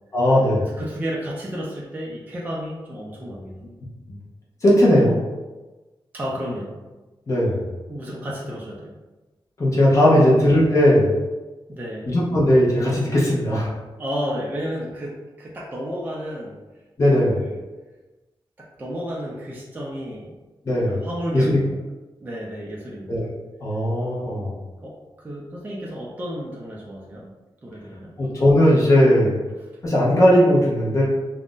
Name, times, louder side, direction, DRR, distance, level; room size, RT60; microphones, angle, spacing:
voice 1, 0.1-0.7 4.6-5.2 7.3-7.7 9.6-11.2 12.1-13.7 17.0-17.4 20.7-21.1 21.3-21.6 23.1-23.3 23.6-24.6 28.2-29.4 29.8-31.0, left 1 dB, 35° left, -6 dB, 0.6 m, -17 dB
voice 2, 0.7-3.6 6.1-6.8 7.9-8.9 10.1-10.4 11.7-12.1 14.0-16.6 17.2-17.6 18.6-20.3 20.9-21.8 22.2-23.1 24.8-24.9 25.2-27.3 27.6-28.1, equal, 20° right, -5 dB, 0.4 m, -32 dB
2.4 x 2.0 x 3.6 m, 1.2 s
wide cardioid pair, 180°, 9 cm